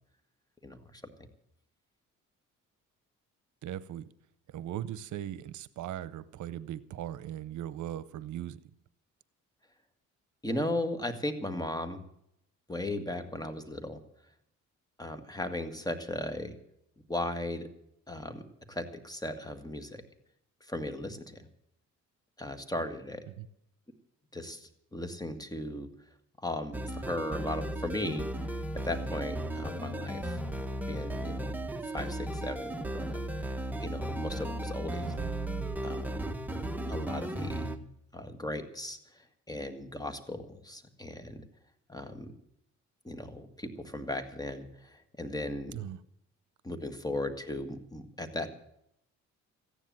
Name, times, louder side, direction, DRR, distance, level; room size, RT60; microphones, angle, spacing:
voice 1, 0.6-1.0 10.4-12.0 12.7-14.0 15.0-16.5 17.1-17.7 18.1-18.4 18.7-20.0 20.6-21.4 22.4-23.2 24.3-25.9 26.4-28.3 28.8-30.4 30.9-31.6 31.9-35.1 35.8-36.3 36.9-37.7 38.1-41.4 41.9-42.3 43.0-45.8 46.6-48.5, left 1 dB, 10° left, 8 dB, 1.8 m, -37 dB
voice 2, 3.6-4.0 4.5-8.6 23.3-23.5 35.0-35.3 45.7-46.0, right 11 dB, 75° right, 17 dB, 0.8 m, -39 dB
sound 1, 26.7-37.8, right 1 dB, 5° right, 1.2 m, -35 dB
14.5 x 10.0 x 7.5 m, 0.75 s
cardioid pair, 90°, 30 cm